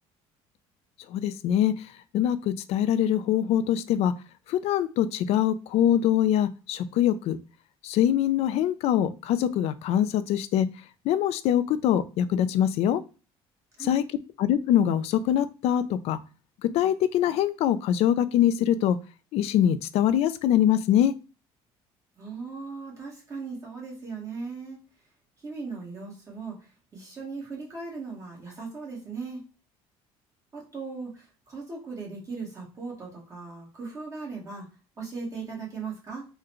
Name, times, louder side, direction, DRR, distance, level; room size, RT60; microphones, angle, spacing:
voice 1, 1.1-1.8 2.1-4.1 4.5-7.4 7.8-10.7 11.1-13.0 13.8-14.0 14.4-16.2 16.6-19.0 19.3-21.1, left 10 dB, 65° left, 13 dB, 0.4 m, -23 dB
voice 2, 22.2-24.8 25.4-29.4 30.5-34.7 35.0-36.3, right 4 dB, 30° right, -4 dB, 1.4 m, -38 dB
3.7 x 2.2 x 3.0 m, 0.34 s
cardioid pair, 130°, 11 cm